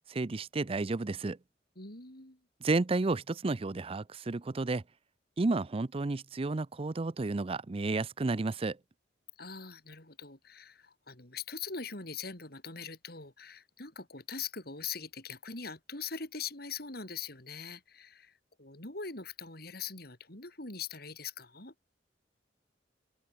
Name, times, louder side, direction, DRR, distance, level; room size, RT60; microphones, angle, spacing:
voice 1, 0.1-1.4 2.6-4.8 5.4-8.8, right 3 dB, 35° right, 0.5 m, -31 dB
voice 2, 1.8-2.4 9.4-21.7, left 5 dB, 60° left, 6.4 m, -42 dB
open air
head